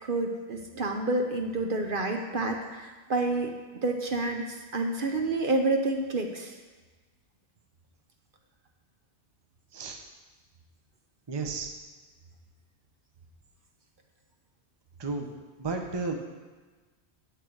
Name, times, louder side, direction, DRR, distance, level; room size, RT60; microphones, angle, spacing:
voice 1, 0.0-3.5 3.8-6.5, right 2 dB, 55° right, 3 dB, 0.9 m, -29 dB
voice 2, 11.3-11.7 15.0-15.3 15.6-16.1, right 4 dB, 25° right, 3 dB, 0.8 m, -32 dB
8.8 x 8.4 x 4.6 m, 1.3 s
omnidirectional pair, 1.2 m